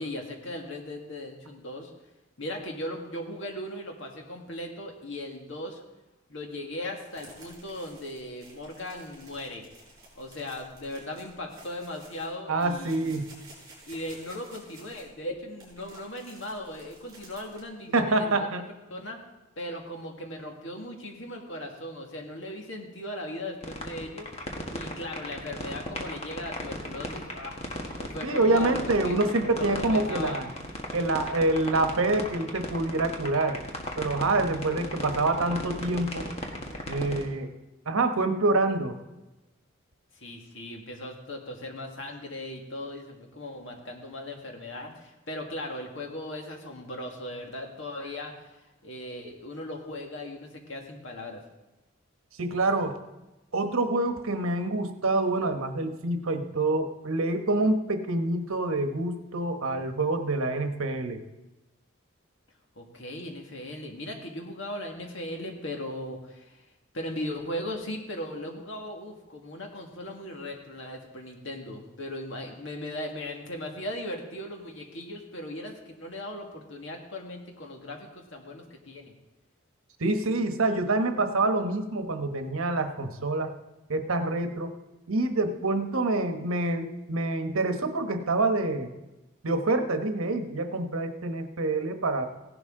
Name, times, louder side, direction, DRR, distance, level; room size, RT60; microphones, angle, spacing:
voice 1, 0.0-1.9 2.4-5.8 6.3-9.6 10.2-13.1 13.9-18.6 18.9-19.2 19.6-24.3 24.7-30.4 40.1-48.5 48.8-51.4 62.8-66.6 66.9-79.1, left 1 dB, 65° left, 2 dB, 1.9 m, -38 dB
sound 1, 7.1-17.6, right 2 dB, 20° right, 5.7 m, -52 dB
voice 2, 12.5-13.3 17.9-18.6 28.2-30.5 30.9-33.6 34.0-36.3 36.9-37.5 37.9-38.9 52.4-53.0 53.5-61.2 80.0-83.5 83.9-84.7 85.1-88.9 89.4-92.3, right 2 dB, 85° right, 7 dB, 1.1 m, -26 dB
sound 2, 23.6-37.2, left 1 dB, 30° left, 1.5 m, -35 dB
16.5 x 11.0 x 3.8 m, 1.0 s
head